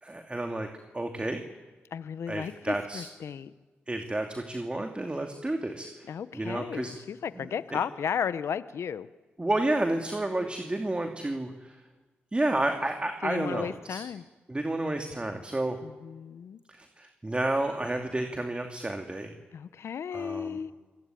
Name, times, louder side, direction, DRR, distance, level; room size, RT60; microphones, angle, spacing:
voice 1, 0.0-0.7 0.9-1.4 2.3-3.1 3.9-7.0 7.3-7.8 9.4-11.8 12.3-14.0 14.5-15.8 16.7-19.3 20.1-20.6, right 2 dB, 25° right, 4 dB, 2.8 m, -31 dB
voice 2, 1.9-3.5 6.1-9.1 13.2-14.2 15.8-16.6 19.5-20.7, left 7 dB, 70° left, 15 dB, 0.9 m, -34 dB
27.0 x 18.0 x 9.2 m, 1.3 s
supercardioid pair, 45°, 5 cm